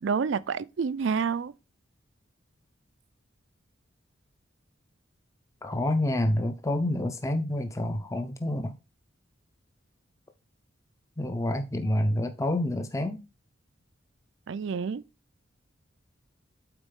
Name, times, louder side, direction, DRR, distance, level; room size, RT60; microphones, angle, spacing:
voice 1, 0.0-1.5 14.5-15.0, right 6 dB, 65° right, 0.4 m, -28 dB
voice 2, 5.6-8.8 11.2-13.2, left 1 dB, 15° left, 0.5 m, -28 dB
8.8 x 4.1 x 3.6 m
head